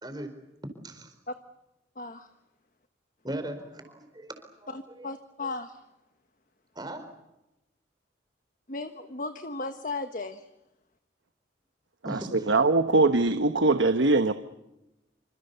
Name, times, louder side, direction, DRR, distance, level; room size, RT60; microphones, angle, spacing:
voice 1, 0.0-0.4 0.8-1.1 3.2-5.1 6.7-7.1 12.0-12.6, right 1 dB, 20° right, 7 dB, 4.5 m, -39 dB
voice 2, 2.0-2.3 4.7-5.8 8.7-10.4, left 3 dB, 45° left, 8 dB, 1.3 m, -35 dB
voice 3, 12.1-14.3, right 3 dB, 90° right, 9 dB, 1.2 m, -22 dB
27.5 x 26.5 x 6.9 m, 0.95 s
head